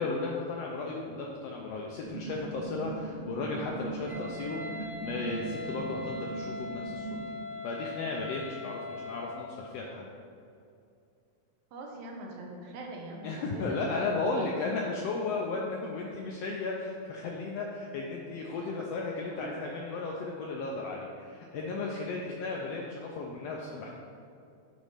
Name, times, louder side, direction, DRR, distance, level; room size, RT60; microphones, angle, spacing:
voice 1, 0.0-7.2 7.6-10.1 13.2-23.9, left 3 dB, 80° left, -1 dB, 1.4 m, -35 dB
sound 1, 2.0-7.2, right 3 dB, 65° left, 0.4 m, -40 dB
Wind instrument woodwind instrument, 4.1-9.4, left 3 dB, 60° right, 2.0 m, -41 dB
voice 2, 11.7-14.4 18.0-18.1 18.5-18.8 19.4-19.5, right 2 dB, 75° right, 1 dB, 2.1 m, -42 dB
8.5 x 3.1 x 5.5 m, 2.5 s
omnidirectional pair, 3.4 m